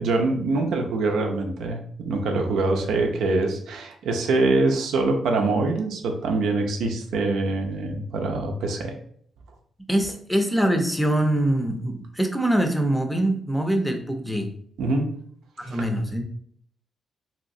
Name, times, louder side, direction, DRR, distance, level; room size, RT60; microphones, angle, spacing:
voice 1, 0.0-8.9 14.8-15.1 15.6-15.9, right 3 dB, 85° right, 3 dB, 0.5 m, -24 dB
voice 2, 9.9-14.5 15.6-16.2, right 1 dB, ahead, 4 dB, 0.5 m, -23 dB
3.1 x 2.8 x 2.6 m, 0.63 s
cardioid pair, 100°, 0 cm